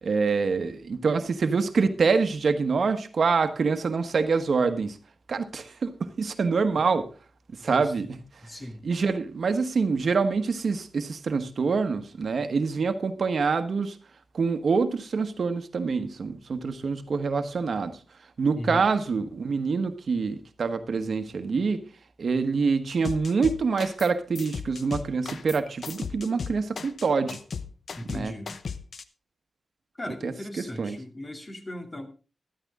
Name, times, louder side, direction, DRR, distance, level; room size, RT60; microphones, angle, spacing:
voice 1, 0.0-5.0 5.3-7.1 7.6-8.2 8.8-14.0 14.3-18.0 18.4-21.9 22.2-27.4 28.1-28.3 30.2-31.0, right 4 dB, 65° right, 9 dB, 1.3 m, -26 dB
voice 2, 8.4-8.8 18.6-18.9 28.0-28.5 30.0-32.1, left 1 dB, 30° left, 5 dB, 2.6 m, -37 dB
sound 1, 23.0-24.1 24.3-29.0, left 5 dB, 65° left, 0.9 m, -36 dB
13.5 x 12.5 x 3.7 m, 0.35 s
cardioid pair, 80°, 0 cm